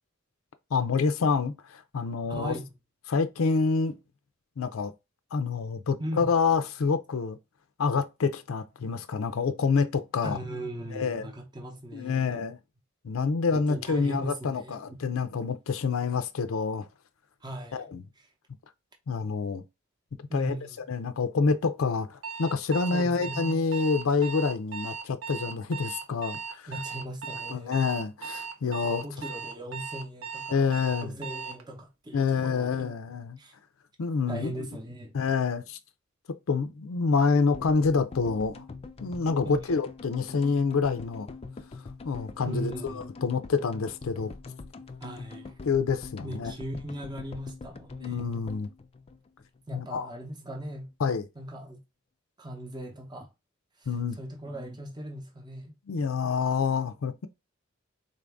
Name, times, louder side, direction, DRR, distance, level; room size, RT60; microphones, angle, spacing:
voice 1, 0.7-2.5 3.1-4.0 4.6-4.9 5.3-7.4 7.8-10.4 10.9-11.2 11.9-12.6 13.0-16.9 17.7-18.0 19.1-19.6 20.3-20.6 20.9-26.7 27.5-29.0 30.5-31.1 32.1-33.4 34.0-34.5 35.1-35.8 36.3-38.6 39.0-41.3 42.0-44.3 45.6-46.5 48.0-48.7 49.7-50.1 51.0-51.3 53.9-54.2 55.9-57.3, left 5 dB, 85° left, 0.5 m, -27 dB
voice 2, 2.3-2.7 6.0-6.3 10.2-12.4 13.5-15.0 17.4-17.8 20.3-20.8 22.9-23.6 26.7-27.8 28.8-32.9 33.4-33.5 34.3-35.1 39.4-39.6 42.5-43.3 45.0-45.6 46.2-48.1 49.7-50.9 51.4-51.8 52.4-53.3 53.8-53.9 54.2-55.8 56.3-56.4, equal, 20° right, 0.7 m, -38 dB
Alarm, 22.2-31.6, right 6 dB, 70° right, 0.7 m, -38 dB
sound 1, 37.5-49.8 50.0-50.1 50.3-50.4, left 3 dB, 30° left, 0.4 m, -44 dB
3.9 x 2.6 x 3.4 m
head